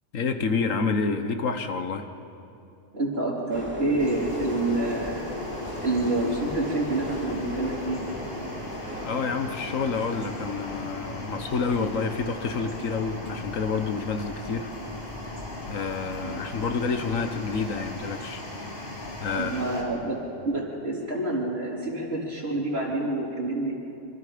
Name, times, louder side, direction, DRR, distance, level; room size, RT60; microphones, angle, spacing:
voice 1, 0.1-2.1 9.0-14.7 15.7-18.4 19.2-19.7, left 5 dB, 85° left, 7 dB, 1.6 m, -28 dB
voice 2, 2.9-5.3 5.8-8.0 16.2-16.5 19.3-23.7, right 2 dB, 50° right, -4 dB, 4.1 m, -28 dB
sound 1, 3.5-18.0, equal, 10° right, 2.9 m, -40 dB
sound 2, 4.0-19.8, left 1 dB, 50° left, 3.7 m, -38 dB
26.5 x 25.0 x 5.1 m, 2.8 s
omnidirectional pair, 1.3 m